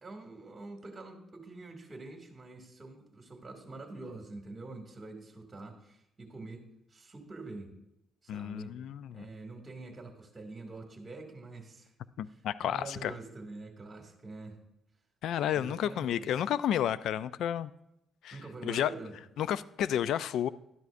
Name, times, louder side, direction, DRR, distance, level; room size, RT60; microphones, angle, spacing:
voice 1, 0.0-6.6 6.9-7.7 8.2-8.7 9.1-11.9 12.3-14.6 15.5-16.3 18.3-19.1, right 3 dB, 30° right, 3 dB, 2.2 m, -46 dB
voice 2, 8.3-9.3 12.2-13.1 15.2-17.7 18.2-18.4 18.6-18.9 19.4-20.5, left 10 dB, 75° left, 16 dB, 0.3 m, -31 dB
12.0 x 10.5 x 2.6 m, 0.83 s
cardioid pair, 90°, 0 cm